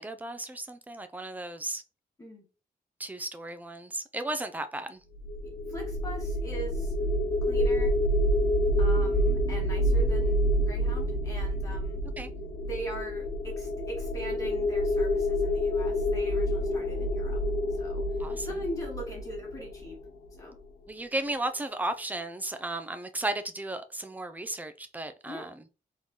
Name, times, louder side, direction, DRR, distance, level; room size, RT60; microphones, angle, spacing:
voice 1, 0.0-1.8 3.0-5.0 12.2-12.3 18.2-18.5 20.9-25.6, right 2 dB, 10° right, 0.5 m, -35 dB
sound 1, 5.1-20.3, equal, 70° left, 0.9 m, -28 dB
voice 2, 5.4-6.9 7.4-7.9 8.8-10.4 10.7-12.0 12.6-17.4 17.8-18.0 18.4-20.0 20.4-20.6 25.3-25.5, right 1 dB, 20° left, 2.1 m, -41 dB
3.9 x 3.8 x 3.0 m
wide cardioid pair, 140°, 16 cm